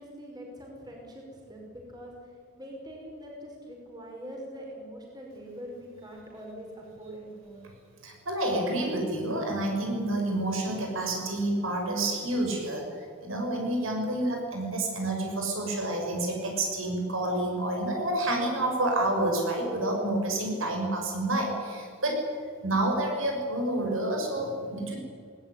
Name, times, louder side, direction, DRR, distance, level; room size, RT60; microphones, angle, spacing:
voice 1, 0.0-2.1 2.5-6.7 7.0-7.6, equal, 20° right, -1 dB, 5.6 m, -43 dB
voice 2, 8.0-22.2 22.6-25.0, right 1 dB, 75° right, 1 dB, 6.3 m, -29 dB
19.5 x 19.0 x 9.8 m, 2.1 s
head